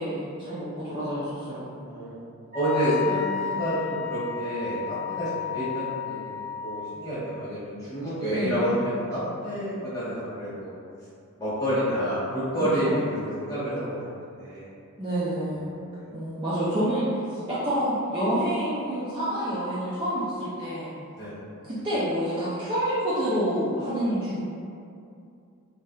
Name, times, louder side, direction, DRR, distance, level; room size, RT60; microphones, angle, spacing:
voice 1, 0.0-1.7 8.3-8.5 12.8-13.0 15.0-15.7 16.1-20.9 21.6-24.4, equal, 20° right, -11 dB, 0.4 m, -28 dB
voice 2, 1.8-2.2 2.5-10.7 11.4-14.6 15.5-15.9 21.1-21.3, equal, 15° left, -12 dB, 1.1 m, -29 dB
Wind instrument woodwind instrument, 2.5-6.9, left 10 dB, 45° right, 1.4 m, -32 dB
3.3 x 2.6 x 2.3 m, 2.5 s
head